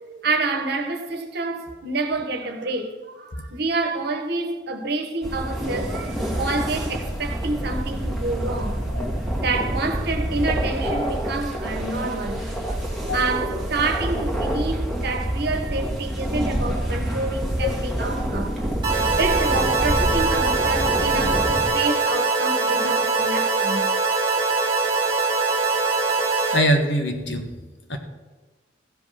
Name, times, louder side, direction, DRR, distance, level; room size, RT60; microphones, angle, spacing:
voice 1, 0.0-2.9 3.2-8.8 9.4-18.6 19.2-23.9, right 3 dB, 60° right, 1.3 m, -28 dB
sound 1, 5.2-21.7, right 1 dB, ahead, 1.9 m, -27 dB
sound 2, 18.8-26.6, right 3 dB, 25° right, 2.0 m, -22 dB
voice 2, 26.5-27.5 27.9-28.0, equal, 65° left, 1.5 m, -23 dB
15.5 x 5.3 x 5.7 m
head